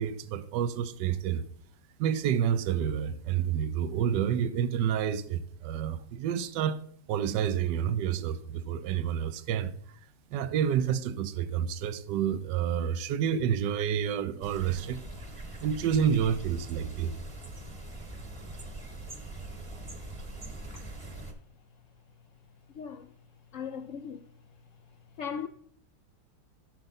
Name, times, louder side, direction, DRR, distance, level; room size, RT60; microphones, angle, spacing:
voice 1, 0.0-1.4 2.0-6.8 7.1-9.7 10.3-15.0 15.6-17.1, right 8 dB, 80° right, 1.3 m, -29 dB
sound 1, 14.4-21.3, right 2 dB, 20° right, 1.0 m, -42 dB
voice 2, 22.7-23.1 23.5-24.2 25.2-25.5, left 7 dB, 70° left, 0.7 m, -38 dB
13.5 x 6.6 x 4.1 m
omnidirectional pair, 1.9 m